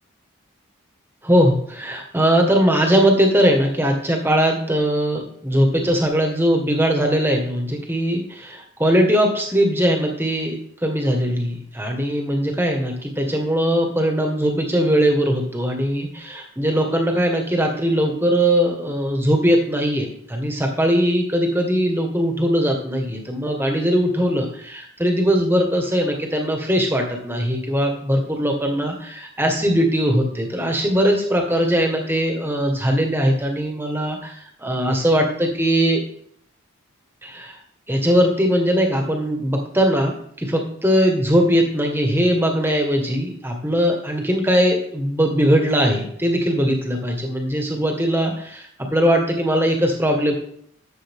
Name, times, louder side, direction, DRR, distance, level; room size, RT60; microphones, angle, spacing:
voice 1, 1.2-36.0 37.2-37.6 37.9-50.3, equal, 10° right, 2 dB, 1.6 m, -20 dB
12.0 x 7.4 x 3.7 m, 0.64 s
head